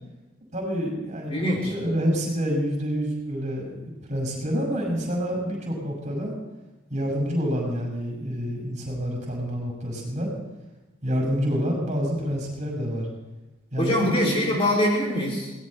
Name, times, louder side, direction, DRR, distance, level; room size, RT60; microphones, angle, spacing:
voice 1, 0.5-3.8 4.1-6.3 6.9-10.3 11.0-13.1 13.7-14.5, equal, 35° right, 0 dB, 6.5 m, -27 dB
voice 2, 1.3-1.7 13.8-15.5, left 1 dB, 30° left, -2 dB, 3.1 m, -23 dB
22.0 x 18.5 x 3.4 m, 1.1 s
head